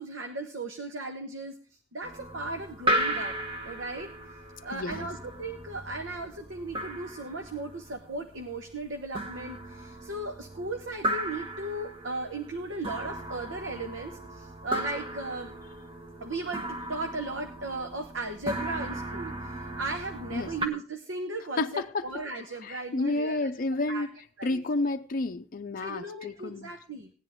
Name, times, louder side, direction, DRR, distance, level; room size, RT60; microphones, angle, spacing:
voice 1, 0.0-3.4 3.6-4.1 4.6-15.5 16.2-23.5 23.9-24.1 24.4-24.6 25.8-27.1, right 2 dB, 70° right, 1.1 m, -36 dB
sound 1, 2.0-20.7, right 1 dB, 30° right, 1.6 m, -36 dB
voice 2, 4.7-5.1 20.3-20.5 21.6-22.1 22.6-24.1 24.4-26.7, left 2 dB, 45° left, 0.5 m, -30 dB
17.0 x 10.0 x 3.7 m
head